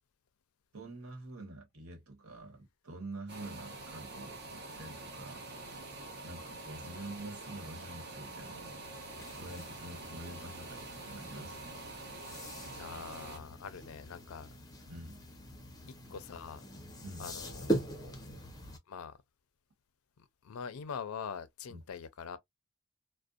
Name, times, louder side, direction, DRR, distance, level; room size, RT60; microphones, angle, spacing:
voice 1, 0.7-5.4 6.2-8.8 9.3-11.6 14.9-15.2 17.0-17.3 21.7-21.8, right 1 dB, 80° right, 1.1 m, -47 dB
sound 1, 3.3-13.4, right 2 dB, 50° right, 0.7 m, -46 dB
sound 2, 8.9-18.8, right 1 dB, 20° left, 0.5 m, -42 dB
voice 2, 12.7-14.5 16.1-16.6 17.2-18.2 18.9-19.2 20.2-22.4, left 6 dB, 80° left, 0.4 m, -44 dB
2.5 x 2.1 x 2.3 m
head